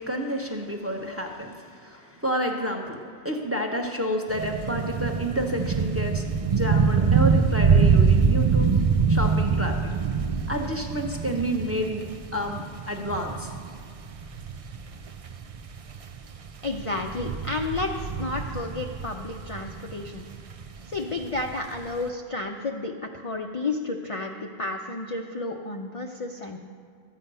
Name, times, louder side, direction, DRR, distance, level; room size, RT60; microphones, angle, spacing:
voice 1, 0.0-8.7 9.1-9.7 10.5-12.0 12.3-13.5, equal, 15° right, 2 dB, 1.0 m, -29 dB
sound 1, 4.3-21.8 22.1-22.2, right 5 dB, 45° right, 0.4 m, -25 dB
voice 2, 16.6-20.3 20.9-26.6, left 2 dB, 35° left, 1 dB, 0.6 m, -31 dB
13.0 x 8.6 x 5.5 m, 2.2 s
omnidirectional pair, 1.2 m